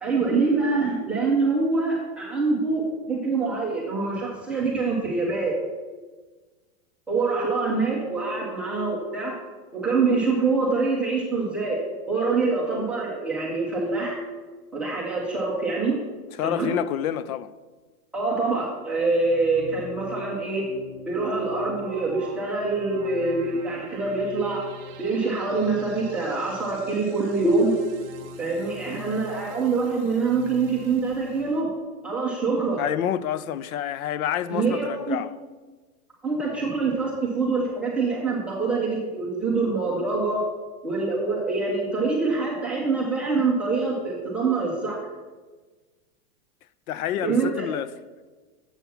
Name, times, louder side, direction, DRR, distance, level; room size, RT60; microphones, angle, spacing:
voice 1, 0.0-5.5 7.1-9.4 9.7-11.8 12.1-14.2 14.7-16.0 16.4-16.7 18.1-20.6 21.1-24.6 25.0-27.7 28.4-31.7 32.0-32.8 34.5-35.2 36.2-40.4 40.8-45.0 47.2-47.7, right 3 dB, 5° right, 0.4 m, -25 dB
voice 2, 16.4-17.5 32.8-35.3 46.9-47.9, left 10 dB, 75° left, 0.6 m, -28 dB
sound 1, 19.1-31.6, left 1 dB, 30° right, 1.4 m, -44 dB
7.2 x 5.7 x 6.9 m
supercardioid pair, 165°, 43 cm